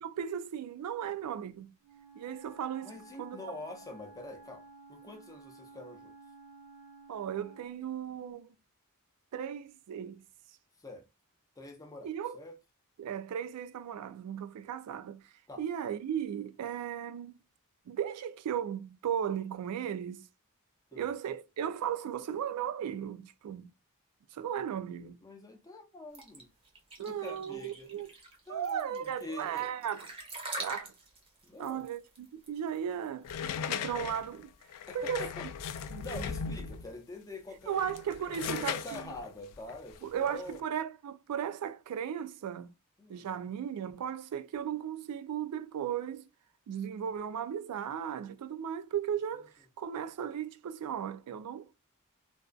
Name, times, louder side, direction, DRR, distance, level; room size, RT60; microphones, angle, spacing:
voice 1, 0.0-1.7 2.2-3.6 7.1-8.6 9.3-10.2 12.0-12.4 13.0-15.2 15.6-17.3 17.9-20.3 20.9-23.7 24.3-25.2 27.0-28.1 28.5-30.1 30.6-30.9 31.6-33.3 33.7-34.5 34.9-35.3 35.9-36.2 37.7-39.0 40.0-42.7 43.1-46.2 46.7-51.7, right 9 dB, 90° right, 0.3 m, -36 dB
Wind instrument woodwind instrument, 1.8-7.8, right 2 dB, 70° right, 1.0 m, -54 dB
voice 2, 2.8-6.1 10.8-11.1 11.6-12.6 15.5-15.6 20.9-21.1 25.2-26.5 27.1-27.9 28.5-29.7 31.4-31.9 34.9-35.5 35.7-37.8 38.3-40.6 43.0-43.3, left 2 dB, 15° left, 0.6 m, -46 dB
sound 1, 26.1-33.8, right 2 dB, 25° right, 0.7 m, -44 dB
sound 2, 33.2-36.9 37.6-40.6, left 7 dB, 90° left, 0.3 m, -38 dB
2.5 x 2.3 x 2.2 m
head